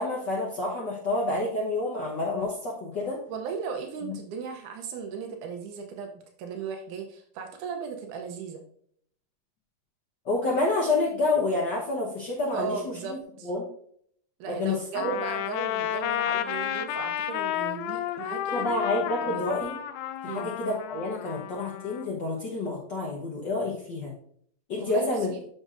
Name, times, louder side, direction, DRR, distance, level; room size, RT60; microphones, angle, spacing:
voice 1, 0.0-3.2 4.0-4.2 10.2-12.8 13.1-13.2 13.4-13.6 14.5-14.8 18.5-19.7 20.2-24.1 24.7-25.3, left 2 dB, 65° left, -3 dB, 1.1 m, -28 dB
voice 2, 3.3-8.6 12.5-13.5 14.4-18.7 19.2-19.5 20.2-20.5 24.8-25.4, right 6 dB, 85° right, 4 dB, 2.2 m, -36 dB
Trumpet, 14.9-22.1, left 12 dB, 85° left, 2.0 m, -31 dB
8.2 x 6.5 x 2.5 m, 0.64 s
omnidirectional pair, 3.5 m